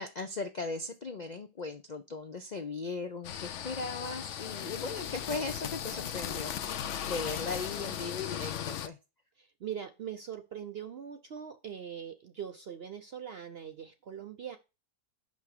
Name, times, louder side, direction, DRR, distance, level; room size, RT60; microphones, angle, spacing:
voice 1, 0.0-6.5 7.1-9.0, left 3 dB, 90° left, 7 dB, 0.3 m, -38 dB
sound 1, 3.2-8.9, left 9 dB, 60° left, 0.8 m, -37 dB
voice 2, 9.4-14.6, right 8 dB, 65° right, 8 dB, 0.6 m, -42 dB
6.0 x 5.5 x 6.5 m, 0.28 s
omnidirectional pair, 1.7 m